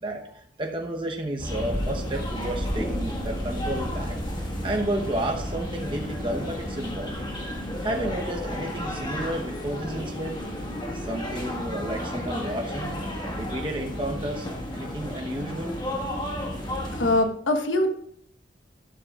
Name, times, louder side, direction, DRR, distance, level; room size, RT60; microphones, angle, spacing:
voice 1, 0.0-7.3 7.8-10.4 10.9-13.0 13.3-14.5 14.7-15.8, right 1 dB, 25° right, 0 dB, 1.0 m, -32 dB
sound 1, 1.4-17.2, equal, 25° left, 1.6 m, -32 dB
voice 2, 16.9-18.0, left 1 dB, 90° left, 6 dB, 1.2 m, -23 dB
12.5 x 12.0 x 2.4 m, 0.71 s
head